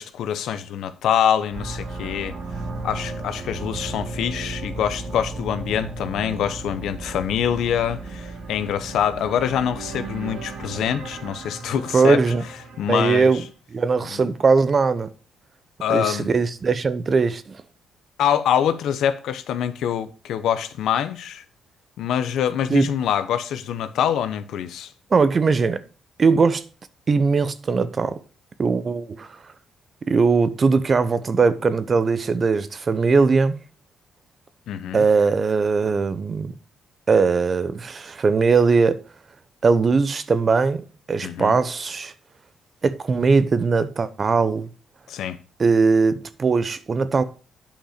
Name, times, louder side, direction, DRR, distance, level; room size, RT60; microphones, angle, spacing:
voice 1, 0.0-2.3 2.8-12.2 12.8-13.3 14.1-14.3 15.8-16.3 18.2-21.4 22.0-24.9 34.7-35.0 41.2-41.6 45.1-45.4, left 9 dB, 80° left, 0.8 m, -25 dB
sound 1, 1.5-13.4, right 3 dB, 65° right, 2.4 m, -35 dB
voice 2, 11.9-12.4 12.9-13.4 13.7-15.1 15.9-17.6 22.7-22.9 25.1-25.8 26.2-26.6 27.1-28.2 28.6-29.3 30.0-33.6 34.9-36.5 37.1-39.0 39.6-42.1 42.8-44.7 45.6-47.2, right 4 dB, 40° right, 0.7 m, -20 dB
9.0 x 5.2 x 5.0 m
cardioid pair, 90°, 0 cm